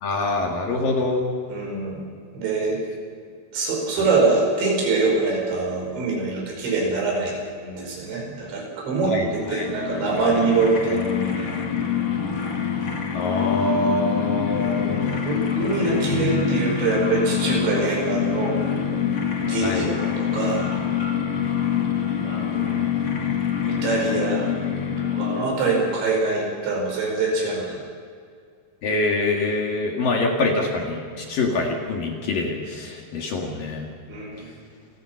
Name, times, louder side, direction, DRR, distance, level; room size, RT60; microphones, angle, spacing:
voice 1, 0.0-1.2 9.1-9.7 13.1-15.0 19.6-19.9 28.8-33.9, left 2 dB, 55° left, 1 dB, 3.4 m, -25 dB
voice 2, 1.5-2.0 2.4-2.8 3.5-9.1 9.5-11.5 14.6-18.6 19.4-20.6 22.2-22.7 23.7-24.5 25.1-27.7 34.1-34.5, right 3 dB, 85° right, -1 dB, 7.6 m, -24 dB
sound 1, 9.1-25.8, left 8 dB, 40° left, 2.7 m, -25 dB
29.0 x 16.5 x 5.9 m, 2.2 s
omnidirectional pair, 5.1 m